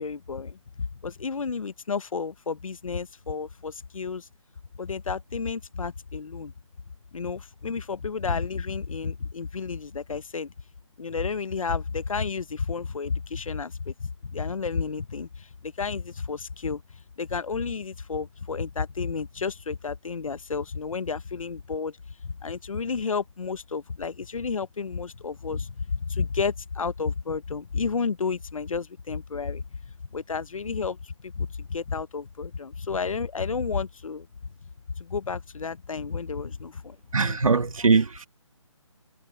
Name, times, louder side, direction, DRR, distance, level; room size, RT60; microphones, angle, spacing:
voice 1, 0.0-4.3 4.8-6.5 7.1-10.5 11.0-16.8 17.2-22.0 22.2-29.6 30.1-34.3 35.0-37.4, left 5 dB, 80° left, 0.8 m, -31 dB
voice 2, 37.1-38.3, right 4 dB, 80° right, 1.4 m, -21 dB
figure-of-eight pair, 155°, 17 cm